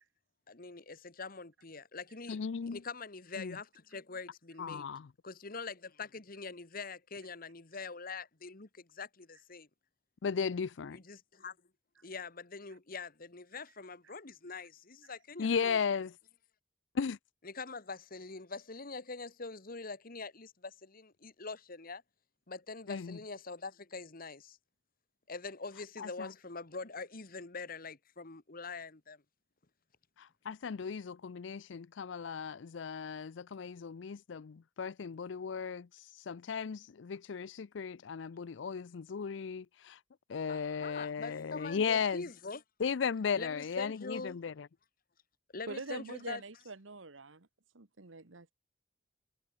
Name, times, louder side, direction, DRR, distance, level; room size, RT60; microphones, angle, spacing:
voice 1, 0.5-2.4 2.7-4.9 5.2-9.7 10.9-11.6 12.0-15.8 17.4-22.0 22.5-24.6 25.3-29.2 40.5-42.6 43.3-44.4 45.5-46.4, left 4 dB, 50° left, 1.6 m, -44 dB
voice 2, 2.3-2.8 3.4-3.6 4.6-5.1 10.2-11.0 15.4-16.1 16.9-17.2 22.9-23.2 26.0-26.3 30.2-35.9 36.3-40.0 40.3-42.2 42.8-44.7, left 6 dB, 70° left, 0.5 m, -36 dB
voice 3, 45.7-47.5 47.7-48.5, right 3 dB, 85° right, 1.6 m, -44 dB
head